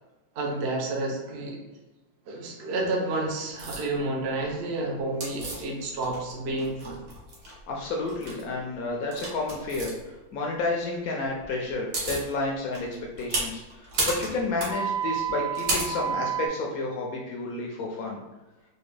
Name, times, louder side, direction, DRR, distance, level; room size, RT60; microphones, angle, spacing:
voice 1, 0.3-1.6 2.3-7.0, right 2 dB, 80° right, -1 dB, 0.5 m, -30 dB
sound 1, 3.6-3.8 5.2-6.3 6.6-7.5 8.1-8.4 9.1-9.9 11.4-11.5 11.7-12.3 12.7-16.5, right 4 dB, 60° right, 1.3 m, -30 dB
voice 2, 7.7-18.2, left 2 dB, 80° left, -1 dB, 0.8 m, -31 dB
4.1 x 2.2 x 3.2 m, 1.1 s
omnidirectional pair, 2.1 m